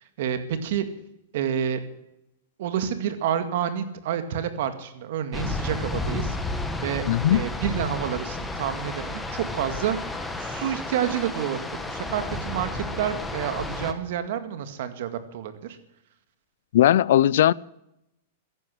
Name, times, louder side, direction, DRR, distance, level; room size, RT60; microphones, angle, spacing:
voice 1, 0.2-0.9 1.3-1.8 2.6-6.4 6.8-7.0 7.3-15.8, right 9 dB, 60° right, 2.0 m, -29 dB
sound 1, 5.3-13.9, left 2 dB, 5° left, 1.4 m, -32 dB
voice 2, 7.1-7.4 16.7-17.5, left 12 dB, 70° left, 0.4 m, -18 dB
14.5 x 11.0 x 7.9 m
supercardioid pair, 150°, 0 cm